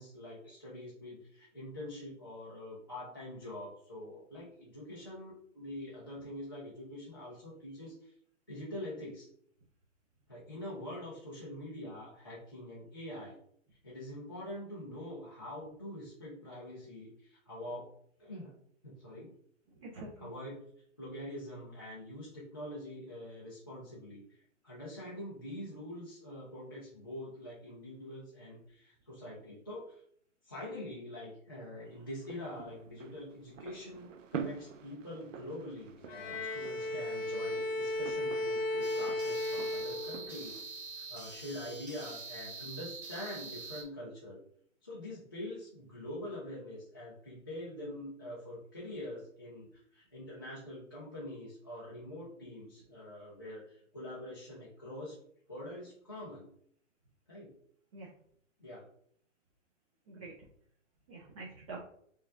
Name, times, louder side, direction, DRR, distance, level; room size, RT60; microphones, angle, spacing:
voice 1, 0.0-8.1 8.5-9.3 10.3-13.4 13.8-17.9 18.2-18.5 18.8-19.3 20.2-20.6 21.0-30.0 30.4-40.6 41.0-44.4 44.8-55.2 55.5-56.5 57.3-57.5 58.6-58.9, left 1 dB, 20° left, -9 dB, 0.3 m, -45 dB
voice 2, 19.8-20.3 57.9-58.1 60.1-60.5 61.1-61.8, right 3 dB, 25° right, -3 dB, 0.6 m, -46 dB
sound 1, 31.9-40.6, right 7 dB, 80° right, 0.6 m, -47 dB
Bowed string instrument, 36.1-40.5, left 1 dB, 80° left, 0.7 m, -35 dB
sound 2, 38.8-43.8, right 4 dB, 55° right, 1.3 m, -45 dB
4.5 x 2.3 x 3.6 m, 0.66 s
hypercardioid pair, 160°, 38 cm